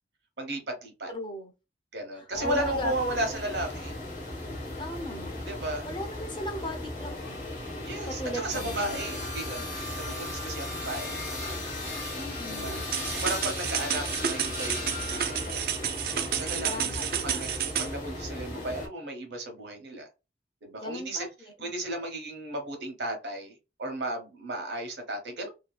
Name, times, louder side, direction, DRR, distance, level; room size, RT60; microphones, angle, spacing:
voice 1, 0.4-1.1 1.9-4.0 5.5-5.9 7.8-9.6 10.0-11.7 12.5-12.8 13.1-15.6 16.3-20.1 20.6-21.3 21.6-25.5, right 1 dB, 75° right, 0.9 m, -34 dB
voice 2, 1.1-1.5 2.4-2.9 4.8-5.3 5.8-7.4 8.2-9.0 9.5-9.6 12.2-12.9 16.6-17.4 20.8-21.7, left 1 dB, 25° left, 0.6 m, -38 dB
sound 1, 2.3-18.9, left 1 dB, 45° left, 1.0 m, -36 dB
sound 2, 12.9-17.9, right 9 dB, 55° right, 0.3 m, -31 dB
2.7 x 2.4 x 2.3 m
head